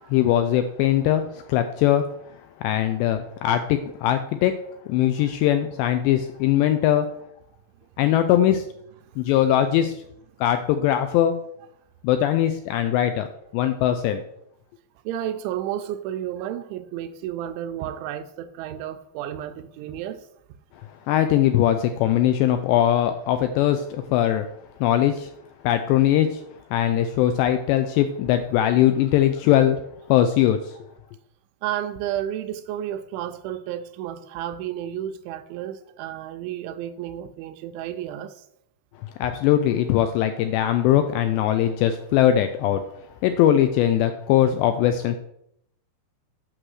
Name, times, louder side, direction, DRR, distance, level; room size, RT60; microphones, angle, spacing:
voice 1, 0.1-2.0 2.6-4.5 4.9-7.1 8.0-8.6 9.2-9.9 10.4-11.4 12.0-13.3 13.5-14.2 21.1-24.5 24.8-25.3 25.6-26.4 26.7-29.8 30.1-30.8 39.2-42.8 43.2-45.2, left 11 dB, 85° left, 2.5 m, -20 dB
voice 2, 15.1-20.3 31.6-38.4, right 11 dB, 80° right, 2.8 m, -32 dB
8.9 x 6.6 x 6.3 m
omnidirectional pair, 5.5 m